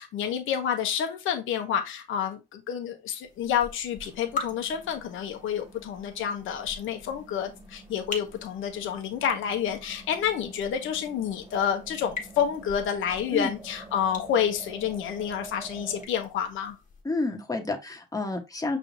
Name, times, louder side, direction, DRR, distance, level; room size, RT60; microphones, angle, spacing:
voice 1, 0.0-16.8, left 8 dB, 80° left, 0.9 m, -29 dB
sound 1, 3.2-17.0, left 4 dB, 40° left, 1.4 m, -44 dB
sound 2, 4.0-16.0, right 2 dB, 30° right, 1.7 m, -48 dB
voice 2, 17.0-18.8, left 2 dB, 20° left, 1.2 m, -29 dB
5.6 x 3.3 x 2.6 m
cardioid pair, 90°, 20 cm